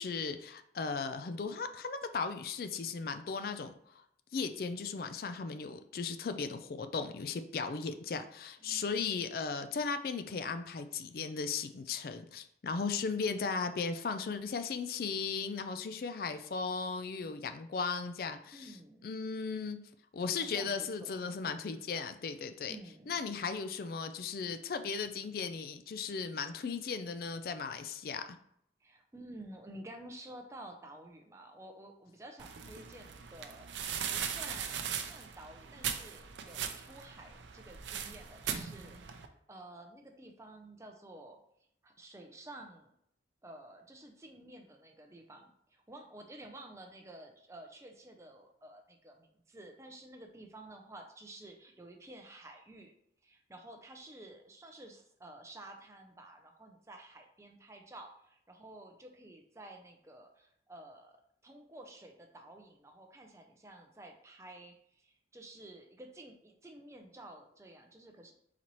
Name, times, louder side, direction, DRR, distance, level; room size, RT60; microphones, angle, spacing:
voice 1, 0.0-4.0 4.3-18.7 19.0-19.8 20.1-22.8 23.1-28.4, left 5 dB, 55° left, 9 dB, 0.4 m, -36 dB
voice 2, 8.6-9.0 18.5-19.1 20.4-21.1 22.7-23.5 28.8-41.4 41.8-42.9 43.4-52.9 53.2-61.2 61.4-68.3, right 1 dB, 15° right, 3 dB, 0.5 m, -52 dB
sound 1, 32.4-39.3, right 8 dB, 85° right, 0.5 m, -39 dB
4.3 x 4.0 x 3.0 m, 0.70 s
head